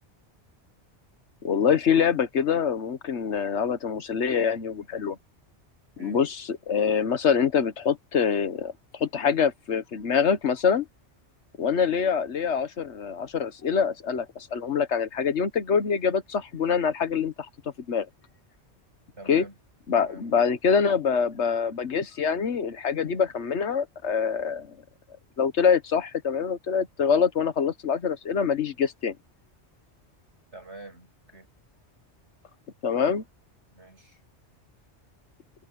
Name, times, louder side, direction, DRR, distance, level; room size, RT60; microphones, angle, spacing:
voice 1, 1.4-5.2 6.0-10.9 11.6-17.5 17.9-18.1 19.3-19.4 19.9-24.8 25.4-29.2 32.8-33.2, left 6 dB, 80° left, 1.5 m, -25 dB
voice 2, 19.2-19.5 19.9-20.2 30.5-31.5 33.7-34.2, right 2 dB, 75° right, 8.5 m, -46 dB
omnidirectional pair, 1.2 m